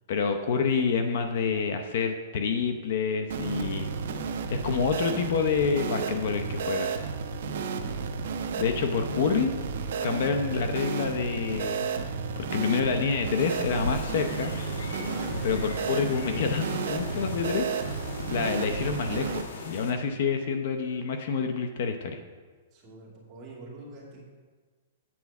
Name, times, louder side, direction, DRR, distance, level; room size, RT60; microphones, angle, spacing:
voice 1, 0.1-3.9 4.5-7.0 8.6-9.6 10.0-11.9 12.4-14.5 15.4-17.7 18.3-22.2, left 5 dB, 55° left, 6 dB, 0.7 m, -28 dB
sound 1, 3.3-19.4, right 5 dB, 65° right, 0.7 m, -32 dB
sound 2, 13.4-19.9, left 3 dB, 75° left, 1.3 m, -39 dB
voice 2, 15.1-15.5 22.7-24.2, right 2 dB, 25° right, -5 dB, 2.5 m, -46 dB
8.7 x 4.7 x 7.0 m, 1.4 s
hypercardioid pair, 165°, 0 cm